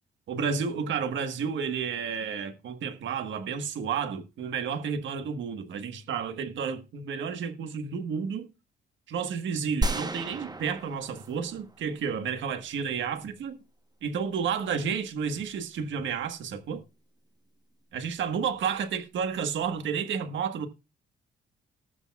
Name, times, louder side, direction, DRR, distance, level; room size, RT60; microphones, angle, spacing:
voice 1, 0.3-8.5 9.1-13.6 14.0-16.8 17.9-20.7, right 6 dB, 70° right, 1.4 m, -31 dB
sound 1, 9.8-12.1, right 2 dB, 20° right, 1.1 m, -33 dB
19.5 x 6.9 x 2.4 m
cardioid pair, 90°, 20 cm